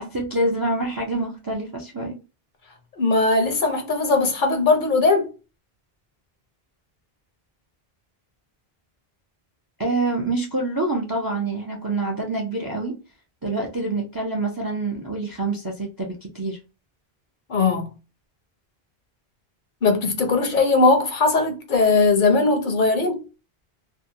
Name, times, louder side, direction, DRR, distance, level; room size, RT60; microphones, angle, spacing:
voice 1, 0.0-2.1 9.8-13.0 13.4-16.6, right 2 dB, 30° right, 0.4 m, -26 dB
voice 2, 3.0-5.3 17.5-17.9 19.8-23.2, left 3 dB, 55° left, 0.8 m, -19 dB
2.7 x 2.1 x 2.6 m
omnidirectional pair, 1.0 m